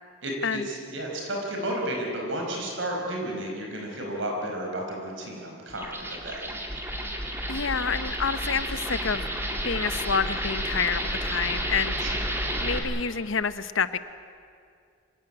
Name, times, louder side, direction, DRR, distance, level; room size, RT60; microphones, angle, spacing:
voice 1, 0.6-6.4 12.0-12.1, right 1 dB, 60° right, 0 dB, 5.0 m, -32 dB
sound 1, 5.7-12.8, right 1 dB, 10° right, 2.4 m, -31 dB
voice 2, 7.5-9.3 9.6-12.1 12.6-14.0, left 6 dB, 65° left, 13 dB, 0.9 m, -28 dB
25.5 x 17.0 x 9.8 m, 2.4 s
head